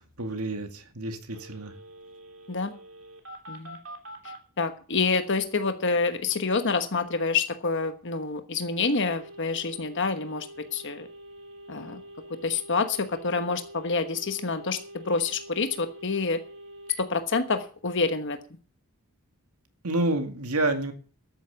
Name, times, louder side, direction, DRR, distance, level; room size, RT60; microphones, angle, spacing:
voice 1, 0.2-1.7 19.8-20.9, right 2 dB, 80° right, 6 dB, 2.2 m, -28 dB
Telephone, 1.3-4.4 8.8-17.0, right 1 dB, 65° right, 3.1 m, -45 dB
voice 2, 3.5-3.8 4.2-11.1 11.7-12.0 12.4-16.4 17.0-18.4, left 4 dB, 55° left, 8 dB, 1.2 m, -27 dB
13.0 x 9.2 x 7.1 m, 0.40 s
head